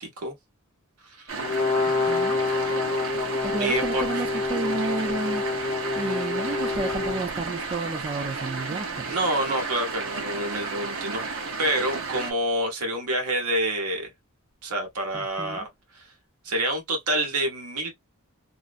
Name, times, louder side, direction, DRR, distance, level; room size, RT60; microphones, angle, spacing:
voice 1, 0.0-0.4 1.0-1.5 3.6-4.1 9.1-14.1 14.6-15.6 15.9-16.0 16.4-17.9, right 1 dB, 85° right, 1.0 m, -27 dB
sound 1, 1.3-12.3, right 4 dB, 65° right, 0.8 m, -33 dB
Brass instrument, 1.4-7.2, left 4 dB, 40° left, 0.6 m, -27 dB
voice 2, 2.1-2.4 3.4-5.4 5.9-9.0 15.1-15.7, right 3 dB, 25° right, 0.4 m, -31 dB
2.5 x 2.0 x 2.4 m
head